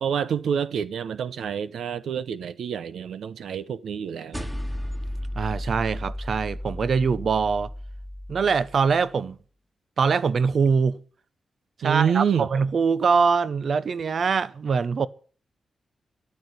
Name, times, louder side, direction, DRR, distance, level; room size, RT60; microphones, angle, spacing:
voice 1, 0.0-4.5 11.8-12.5, right 8 dB, 85° right, 0.8 m, -27 dB
sound 1, 4.3-9.0, left 1 dB, 10° right, 2.2 m, -34 dB
voice 2, 5.3-7.7 8.3-9.4 10.0-11.0 11.8-15.1, right 5 dB, 55° right, 0.8 m, -23 dB
13.5 x 10.5 x 8.0 m
wide cardioid pair, 130°, 0 cm